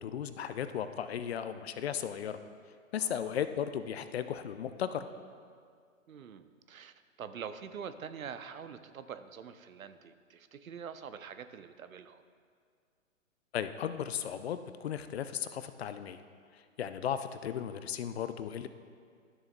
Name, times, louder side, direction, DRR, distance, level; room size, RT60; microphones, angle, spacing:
voice 1, 0.0-2.4 2.9-5.1 13.5-16.2 16.5-18.7, left 9 dB, 50° left, 11 dB, 0.5 m, -36 dB
voice 2, 3.0-3.4 6.1-12.2, right 7 dB, 80° right, 11 dB, 0.6 m, -45 dB
12.5 x 7.0 x 2.2 m, 2.1 s
figure-of-eight pair, 125°, 40 cm